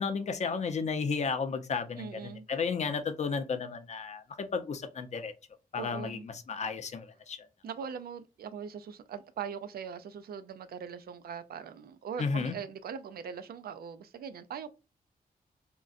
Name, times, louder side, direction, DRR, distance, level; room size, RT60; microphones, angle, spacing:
voice 1, 0.0-5.3 5.7-7.4 12.2-12.5, left 5 dB, 50° left, 0.5 m, -33 dB
voice 2, 2.0-2.5 5.7-6.3 7.6-14.7, right 7 dB, 85° right, 0.4 m, -41 dB
3.7 x 2.1 x 2.4 m
wide cardioid pair, 130°, 15 cm